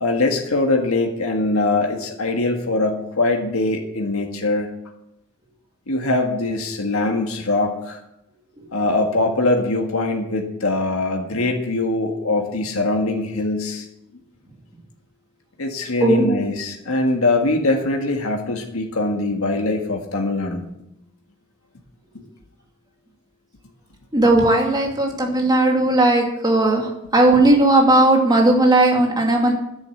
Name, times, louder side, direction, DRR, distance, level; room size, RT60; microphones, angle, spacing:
voice 1, 0.0-4.7 5.9-8.0 8.7-13.9 15.6-20.6, left 2 dB, 85° left, 2 dB, 1.7 m, -22 dB
voice 2, 24.1-29.5, right 2 dB, 20° right, 0 dB, 2.6 m, -16 dB
10.5 x 9.8 x 8.0 m, 0.85 s
head